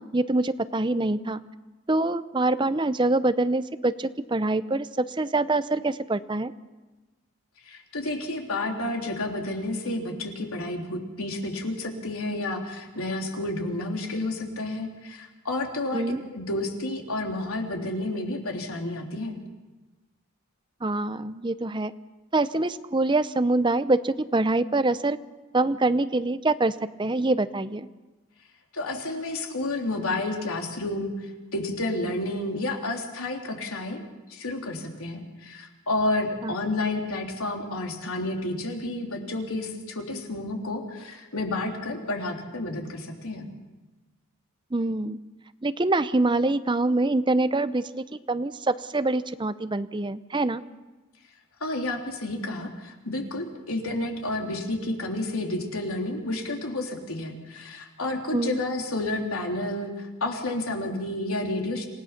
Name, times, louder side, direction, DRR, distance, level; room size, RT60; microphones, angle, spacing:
voice 1, 0.0-1.4 1.9-6.5 15.9-16.2 20.8-21.9 22.3-25.2 25.5-27.9 36.4-36.5 44.7-45.2 45.6-50.6 58.3-58.6, right 2 dB, 20° right, 13 dB, 0.6 m, -25 dB
voice 2, 7.6-16.0 16.3-19.4 28.7-34.0 34.3-43.5 51.6-61.9, left 2 dB, 80° left, 1 dB, 3.3 m, -30 dB
27.5 x 17.0 x 5.9 m, 1.2 s
head